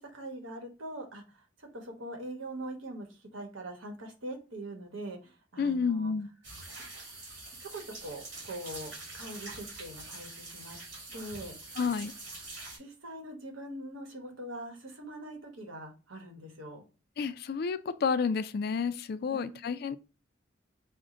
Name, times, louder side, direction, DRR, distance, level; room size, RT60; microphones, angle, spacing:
voice 1, 0.0-6.1 7.6-10.8 11.1-11.7 12.8-16.8 19.3-19.7, right 1 dB, 80° right, 1.2 m, -43 dB
voice 2, 5.6-6.3 11.8-12.1 17.2-20.0, left 5 dB, 50° left, 0.3 m, -30 dB
sound 1, 6.4-12.8, right 2 dB, 60° right, 2.0 m, -45 dB
4.8 x 2.1 x 3.7 m
head